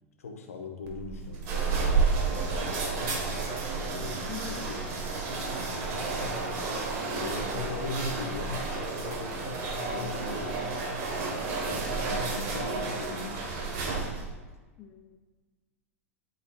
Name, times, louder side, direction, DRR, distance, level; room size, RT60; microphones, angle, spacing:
voice 1, 0.2-4.9 5.4-6.4 7.1-10.7 11.1-14.2, left 3 dB, 75° left, 3 dB, 1.0 m, -41 dB
sound 1, 0.9-14.4, right 4 dB, 50° right, 1.2 m, -31 dB
voice 2, 4.3-4.7 14.8-15.2, left 8 dB, 35° left, 4 dB, 0.5 m, -42 dB
sound 2, 5.8-12.0, right 3 dB, 30° right, 1.0 m, -44 dB
11.5 x 4.0 x 2.3 m, 1.3 s
figure-of-eight pair, 90°, 8 cm